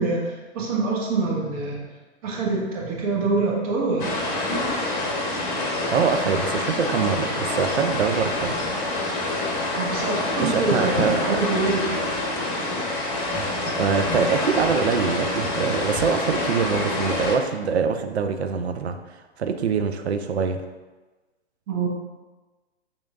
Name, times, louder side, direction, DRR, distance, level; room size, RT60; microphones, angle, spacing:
voice 1, 0.0-1.8 2.2-4.2 9.8-12.0 21.7-21.9, right 3 dB, 35° right, -2 dB, 1.0 m, -25 dB
sound 1, 4.0-17.4, left 2 dB, 35° left, 0.8 m, -26 dB
voice 2, 5.9-8.6 8.8-8.9 10.4-11.4 13.8-19.0 19.4-20.6, right 6 dB, 70° right, 7 dB, 0.5 m, -24 dB
5.4 x 3.0 x 2.3 m, 1.2 s
figure-of-eight pair, 120°, 34 cm